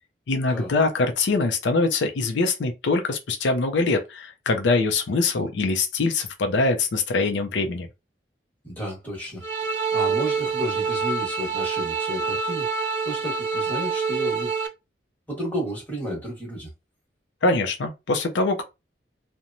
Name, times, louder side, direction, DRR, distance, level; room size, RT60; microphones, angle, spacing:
voice 1, 0.3-7.9 17.4-18.6, left 3 dB, 85° left, 0.5 m, -23 dB
voice 2, 8.6-14.5 15.3-16.7, equal, 10° left, 1.1 m, -32 dB
sound 1, 9.4-14.7, right 5 dB, 75° right, 0.6 m, -26 dB
2.9 x 2.1 x 2.5 m
head